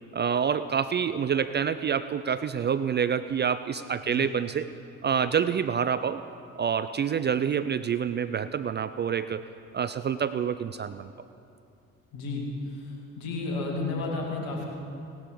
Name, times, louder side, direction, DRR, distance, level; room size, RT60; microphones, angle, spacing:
voice 1, 0.1-4.7 5.0-6.2 6.6-9.4 9.7-11.1, right 7 dB, 25° right, 13 dB, 0.4 m, -27 dB
voice 2, 12.1-14.6, left 3 dB, 65° left, -1 dB, 2.5 m, -32 dB
17.5 x 11.5 x 3.9 m, 2.6 s
hypercardioid pair, 50°, 41 cm